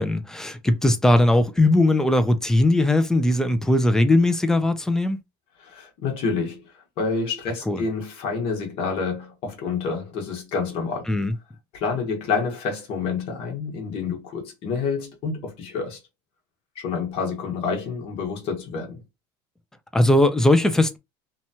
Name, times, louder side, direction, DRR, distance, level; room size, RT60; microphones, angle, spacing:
voice 1, 0.0-5.2 7.7-7.8 11.1-11.3 19.9-21.0, left 1 dB, 5° left, 0.3 m, -19 dB
voice 2, 5.6-6.7 7.0-11.0 11.7-16.0 16.7-19.0, left 5 dB, 55° left, 1.1 m, -28 dB
2.9 x 2.2 x 2.8 m
cardioid pair, 155°, 12 cm